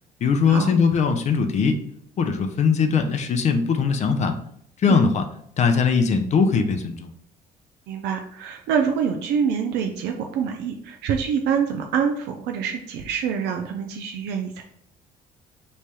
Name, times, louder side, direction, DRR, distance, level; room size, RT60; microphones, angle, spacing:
voice 1, 0.2-1.8 2.2-4.4 4.8-5.2 5.6-7.1, left 5 dB, 45° left, 6 dB, 0.5 m, -20 dB
voice 2, 7.9-14.6, right 7 dB, 80° right, 4 dB, 0.4 m, -26 dB
3.2 x 2.2 x 4.2 m, 0.68 s
cardioid pair, 110°, 17 cm